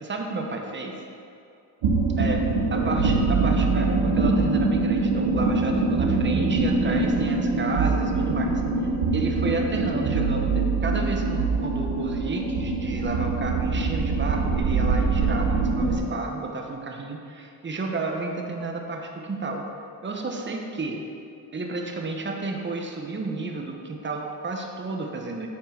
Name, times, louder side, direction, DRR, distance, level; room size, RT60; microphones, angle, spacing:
voice 1, 0.0-1.0 2.2-2.4 2.7-8.6 9.1-19.6 20.0-21.0 21.5-25.5, right 3 dB, 25° right, 2 dB, 1.1 m, -31 dB
sound 1, 1.8-16.0, right 3 dB, 70° right, 1.3 m, -23 dB
8.6 x 4.4 x 5.9 m, 2.5 s
cardioid pair, 75°, 43 cm